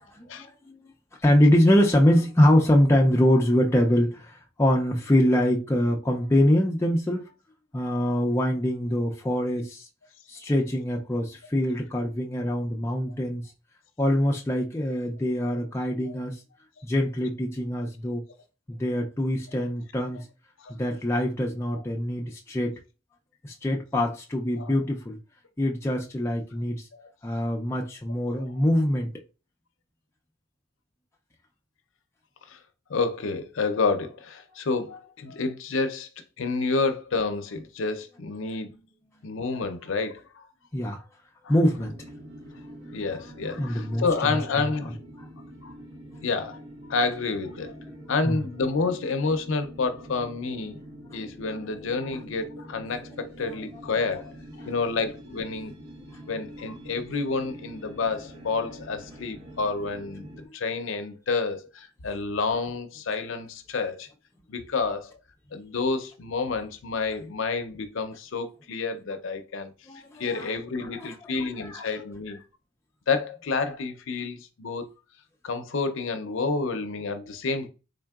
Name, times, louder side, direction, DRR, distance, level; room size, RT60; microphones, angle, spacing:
voice 1, 0.1-0.7 1.2-7.3 7.7-9.9 10.3-13.4 14.0-16.4 16.8-18.2 18.7-20.2 20.7-22.8 23.4-25.2 25.6-26.8 27.2-29.1 40.7-41.0 41.5-42.0 43.6-44.4 48.2-48.4 51.1-51.2 69.9-70.5 71.0-71.1 71.6-71.8, left 1 dB, 10° left, 0.3 m, -24 dB
voice 2, 32.9-36.1 36.4-38.8 39.2-40.5 41.4-41.5 42.9-45.0 45.6-45.7 46.2-46.6 46.9-47.8 48.1-50.8 51.1-54.3 54.7-55.8 56.3-60.3 60.5-64.1 64.5-65.1 65.5-69.7 70.2-72.4 73.1-74.9 75.4-77.7, left 4 dB, 65° left, 0.5 m, -29 dB
sound 1, 41.5-60.4, right 1 dB, 60° right, 1.2 m, -45 dB
3.7 x 3.5 x 2.3 m
head